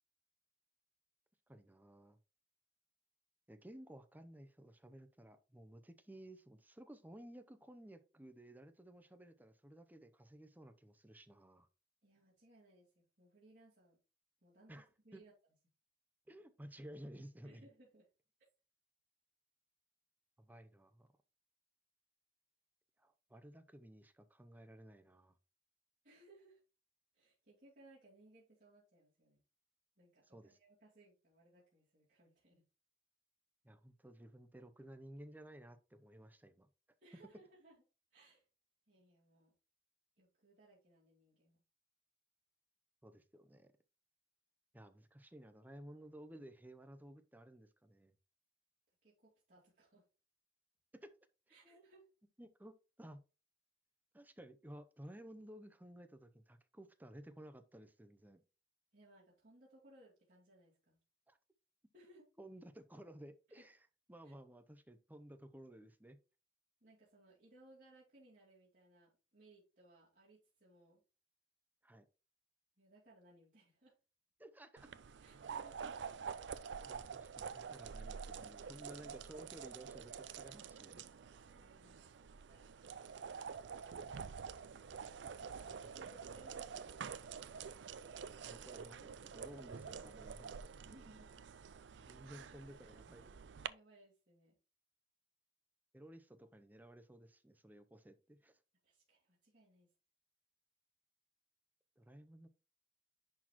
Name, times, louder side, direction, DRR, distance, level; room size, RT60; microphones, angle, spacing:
voice 1, 1.5-2.2 3.5-11.7 14.7-14.9 15.1-15.3 16.3-17.7 20.4-21.1 23.0-25.4 30.3-30.6 33.6-36.7 43.0-43.7 44.7-48.1 50.9-51.1 51.6-51.8 52.4-53.2 54.1-58.4 61.3-61.4 62.4-63.8 64.1-66.2 71.8-72.1 74.4-74.9 76.9-81.0 84.0-84.2 85.6-85.9 88.1-90.6 92.0-93.3 95.9-98.6 102.0-102.5, right 1 dB, 10° right, 0.6 m, -55 dB
voice 2, 12.0-14.0 14.4-15.3 17.4-18.1 26.0-26.6 27.1-29.4 30.0-32.6 37.0-37.7 38.1-38.5 38.9-39.5 40.2-41.6 49.0-50.1 51.5-52.1 58.9-61.0 61.9-62.2 63.5-63.7 64.2-64.3 66.8-71.0 72.8-74.0 75.2-75.8 81.5-82.7 85.4-87.3 90.8-91.3 91.9-92.7 93.6-94.6 98.8-99.9, right 1 dB, 45° right, 2.6 m, -65 dB
sound 1, 74.8-93.7, right 6 dB, 75° right, 0.4 m, -48 dB
10.5 x 4.2 x 3.0 m
head